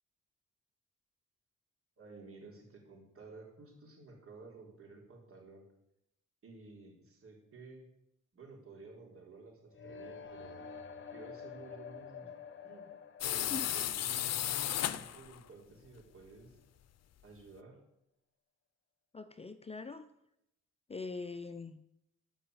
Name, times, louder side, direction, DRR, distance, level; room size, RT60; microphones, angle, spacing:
voice 1, 2.0-5.7 6.4-7.9 8.3-10.6 11.1-12.3 12.6-12.9 13.2-14.3 14.8-16.6 17.2-17.8, right 3 dB, 45° right, 0 dB, 4.2 m, -53 dB
sound 1, 9.7-15.6, left 6 dB, 40° left, 1.4 m, -49 dB
sound 2, 13.2-15.4, left 11 dB, 60° left, 0.7 m, -34 dB
voice 2, 19.1-20.1 20.9-21.8, left 4 dB, 20° left, 10 dB, 0.6 m, -42 dB
13.0 x 5.8 x 8.1 m, 0.81 s
cardioid pair, 90°, 30 cm